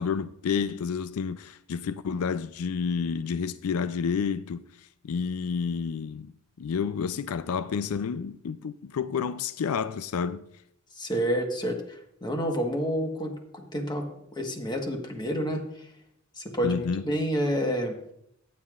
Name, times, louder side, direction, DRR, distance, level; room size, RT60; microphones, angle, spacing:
voice 1, 0.0-6.3 6.6-10.4 16.6-17.0, left 6 dB, 90° left, 0.4 m, -30 dB
voice 2, 10.9-14.0 14.3-15.9 16.4-18.0, equal, 20° left, 1.4 m, -29 dB
14.0 x 9.6 x 2.5 m
head